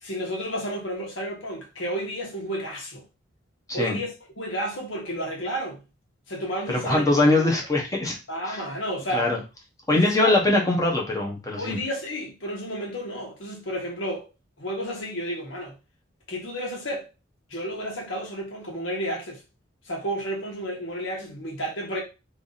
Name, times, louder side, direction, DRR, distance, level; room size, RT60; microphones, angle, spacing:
voice 1, 0.0-3.0 3.7-4.1 4.4-5.8 6.3-7.5 8.3-9.3 9.9-10.4 11.5-14.3 14.6-15.7 16.3-17.1 17.5-19.4 19.8-22.0, equal, 70° left, 1.5 m, -31 dB
voice 2, 6.7-8.2 8.5-8.6 9.1-9.4 9.9-11.8, left 2 dB, 15° left, 1.0 m, -22 dB
3.4 x 2.7 x 4.0 m
head